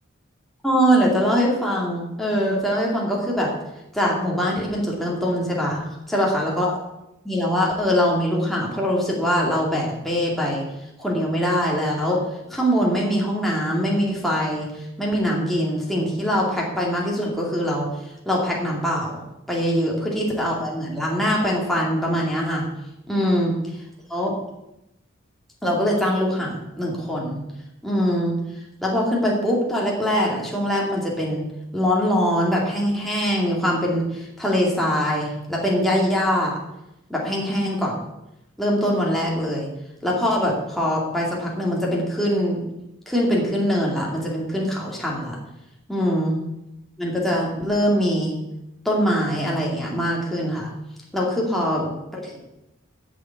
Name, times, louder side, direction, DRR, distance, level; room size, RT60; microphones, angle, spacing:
voice 1, 0.6-3.5 3.9-6.8 7.2-10.6 11.0-12.2 12.5-17.9 18.3-22.7 23.1-23.6 24.1-24.3 25.6-27.4 27.8-28.4 28.8-31.4 31.7-36.6 37.1-38.0 38.6-39.7 40.0-42.6 43.1-45.4 45.9-46.4 47.0-48.4 48.8-50.7 51.1-52.4, equal, ahead, -4 dB, 2.3 m, -23 dB
9.9 x 7.0 x 8.4 m, 0.89 s
head